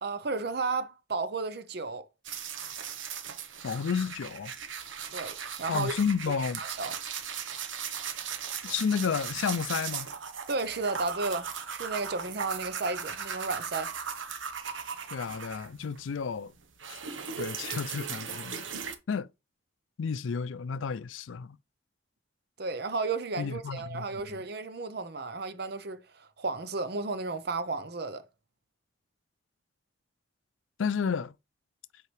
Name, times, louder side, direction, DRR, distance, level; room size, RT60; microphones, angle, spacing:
voice 1, 0.0-2.1 5.1-5.9 6.3-6.9 10.5-13.9 22.6-28.2, right 3 dB, 55° right, 0.7 m, -33 dB
sound 1, 2.2-16.0 16.3-18.9, right 7 dB, 90° right, 1.1 m, -38 dB
voice 2, 3.6-4.5 5.7-6.6 8.6-10.1 15.1-16.5 16.9-17.0 17.4-18.7 19.1-19.3 20.0-21.6 23.4-24.1 30.8-31.3, left 6 dB, 90° left, 0.4 m, -31 dB
8.1 x 4.6 x 3.3 m
head